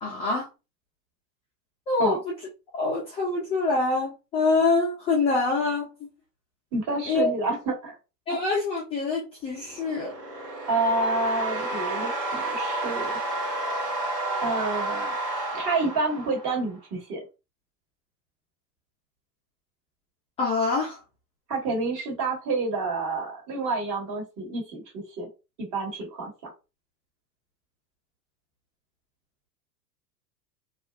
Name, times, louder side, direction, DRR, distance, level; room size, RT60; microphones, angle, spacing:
voice 1, 0.0-0.5 1.9-2.3 2.7-6.1 7.1-7.3 8.3-10.1 20.4-21.0, left 3 dB, 15° left, -3 dB, 0.3 m, -25 dB
voice 2, 6.7-8.0 10.7-13.2 14.4-15.2 15.5-17.2 21.5-25.3 25.6-26.5, right 3 dB, 35° right, 0 dB, 1.4 m, -28 dB
sound 1, 9.6-16.7, right 2 dB, 90° right, 1.4 m, -31 dB
2.5 x 2.4 x 2.3 m, 0.28 s
hypercardioid pair, 100°, 49 cm